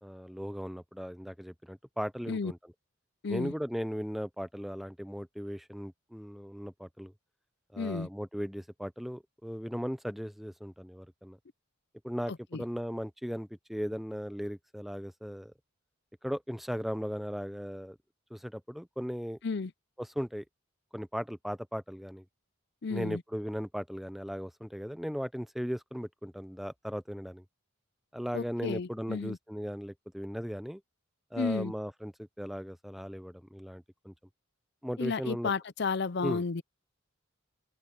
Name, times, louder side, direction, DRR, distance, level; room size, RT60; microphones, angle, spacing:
voice 1, 0.0-2.6 3.3-7.1 7.7-11.4 12.0-15.5 16.2-18.0 18.3-19.4 20.0-20.4 20.9-22.2 22.9-27.4 28.1-30.8 31.3-32.1 32.4-34.1 34.8-35.5 36.2-36.4, equal, ahead, 0.6 m, -37 dB
voice 2, 7.8-8.1 12.3-12.6 19.4-19.7 22.8-23.2 28.3-29.4 31.4-31.7 35.0-36.6, left 4 dB, 55° left, 0.6 m, -32 dB
open air
head